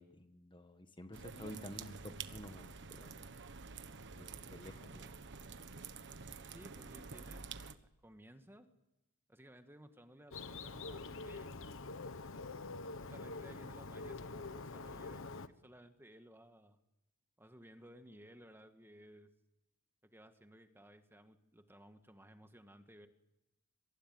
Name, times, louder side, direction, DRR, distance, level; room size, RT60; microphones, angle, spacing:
voice 1, 0.0-3.2 4.2-5.1, left 1 dB, 20° left, 7 dB, 1.6 m, -51 dB
sound 1, 1.1-7.8, right 5 dB, 55° right, 1.3 m, -49 dB
voice 2, 6.5-7.4 8.0-8.7 9.3-11.8 12.8-16.8 17.4-19.3 20.0-23.1, equal, 10° right, 7 dB, 1.9 m, -58 dB
Bird, 10.3-15.5, left 3 dB, 60° left, 1.3 m, -46 dB
26.0 x 24.0 x 9.6 m, 0.90 s
head